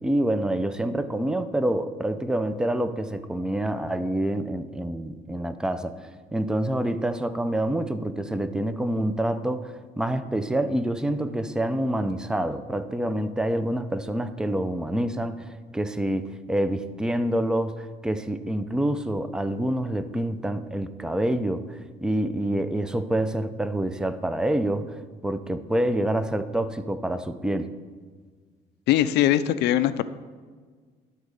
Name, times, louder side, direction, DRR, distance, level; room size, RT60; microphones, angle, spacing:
voice 1, 0.0-27.7, right 1 dB, 5° right, 11 dB, 0.5 m, -27 dB
voice 2, 28.9-30.0, left 12 dB, 80° left, 13 dB, 0.5 m, -21 dB
12.0 x 4.0 x 6.5 m, 1.5 s
cardioid pair, 110°, 17 cm